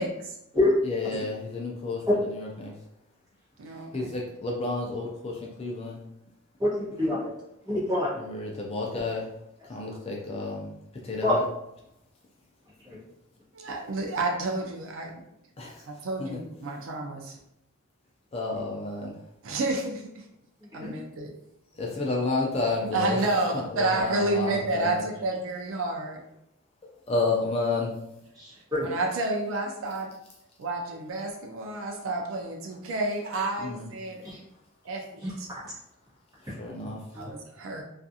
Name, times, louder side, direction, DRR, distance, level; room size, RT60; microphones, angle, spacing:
voice 1, 0.0-0.3 3.6-4.1 13.5-15.2 15.9-17.4 19.4-20.2 20.7-21.3 22.9-26.2 28.8-30.1 30.6-34.2 34.8-35.5 37.1-37.8, right 2 dB, 65° right, 2 dB, 0.4 m, -30 dB
voice 2, 0.8-2.7 3.9-6.0 8.2-9.3 9.7-10.7 11.0-11.4 15.6-15.9 16.2-16.4 18.3-19.2 21.7-23.2 23.5-25.1 27.1-27.9 33.6-33.9 36.4-37.0, left 3 dB, 30° left, -1 dB, 0.4 m, -31 dB
voice 3, 7.0-7.3 7.6-8.1 11.2-11.4 20.8-20.9 28.4-28.9 34.2-34.4 35.2-35.6 37.1-37.3, left 2 dB, 15° right, -9 dB, 1.1 m, -26 dB
2.4 x 2.3 x 2.7 m, 0.81 s
head